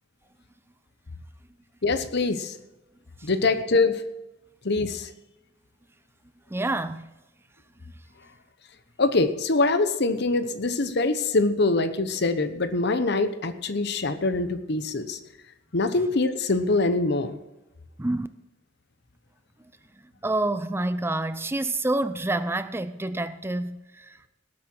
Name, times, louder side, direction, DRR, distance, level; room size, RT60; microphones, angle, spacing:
voice 1, 1.8-2.5 3.2-4.0 4.6-5.1 9.0-15.2 15.7-17.4, left 3 dB, 60° left, 1.0 m, -24 dB
voice 2, 6.5-7.1 18.0-18.3 20.2-24.3, right 2 dB, 15° right, 0.5 m, -28 dB
18.5 x 8.5 x 4.5 m
head